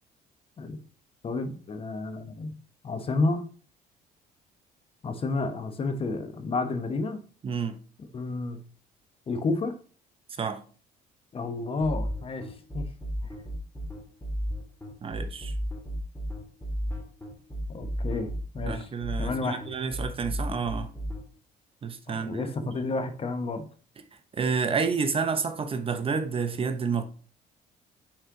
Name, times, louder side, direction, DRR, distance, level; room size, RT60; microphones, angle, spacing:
voice 1, 1.2-2.5 2.8-3.5 5.0-7.2 8.1-8.6 9.3-9.8 11.3-12.9 17.7-18.9 19.2-19.6 22.1-23.7, left 3 dB, 35° left, 0.9 m, -30 dB
voice 2, 7.4-7.8 10.4-10.6 15.0-15.5 18.7-20.9 21.8-22.7 24.3-27.0, right 5 dB, 35° right, 0.7 m, -29 dB
sound 1, 11.8-21.2, equal, 15° left, 1.9 m, -33 dB
5.8 x 4.4 x 3.7 m
cardioid pair, 110°, 17 cm